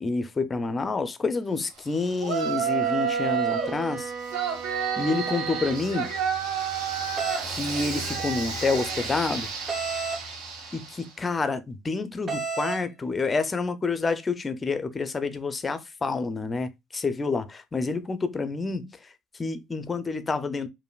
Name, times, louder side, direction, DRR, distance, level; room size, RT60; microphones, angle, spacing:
voice 1, 0.0-4.1 5.0-6.1 7.5-9.5 10.7-18.9 19.4-20.7, left 4 dB, 15° left, 0.4 m, -28 dB
Yell, 2.2-3.8 4.3-11.0, right 7 dB, 85° right, 1.8 m, -30 dB
Bowed string instrument, 2.5-6.3, right 6 dB, 45° right, 0.9 m, -36 dB
sound 1, 7.2-7.5 9.7-10.2 12.3-12.8, right 4 dB, 20° right, 0.7 m, -30 dB
5.1 x 2.5 x 2.3 m
cardioid pair, 170°, 0 cm